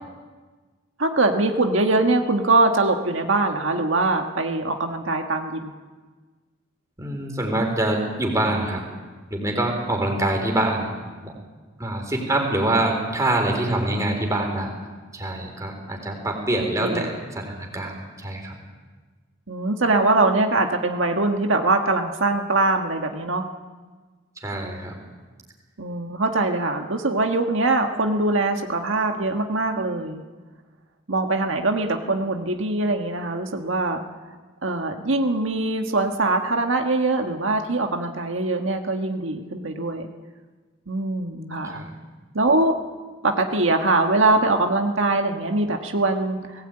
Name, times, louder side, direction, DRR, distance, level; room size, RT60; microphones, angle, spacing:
voice 1, 1.0-5.7 16.8-17.1 19.5-23.5 25.8-30.2 31.1-34.0 34.6-40.1 40.9-41.8 42.3-42.8 43.2-46.7, right 2 dB, 85° right, 4 dB, 1.6 m, -22 dB
voice 2, 7.0-8.8 9.3-10.9 11.2-11.3 11.8-14.7 15.1-18.5 24.4-24.9 41.6-41.9, right 1 dB, 15° right, 1 dB, 4.0 m, -25 dB
19.0 x 17.5 x 9.0 m, 1.4 s
head